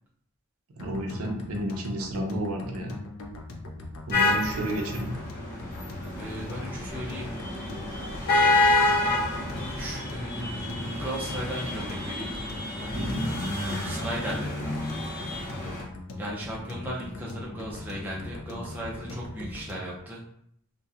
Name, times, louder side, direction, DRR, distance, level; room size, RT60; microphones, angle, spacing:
sound 1, 0.8-20.0, left 2 dB, 70° left, 0.4 m, -40 dB
voice 1, 0.8-2.9 4.1-5.1 12.9-13.3, right 1 dB, 85° right, 2 dB, 0.5 m, -31 dB
sound 2, 4.1-15.8, left 2 dB, 45° left, 0.7 m, -28 dB
voice 2, 6.2-7.3 9.6-12.5 13.8-14.7 16.2-20.2, equal, 10° right, -5 dB, 0.5 m, -36 dB
2.8 x 2.1 x 2.3 m, 0.68 s
head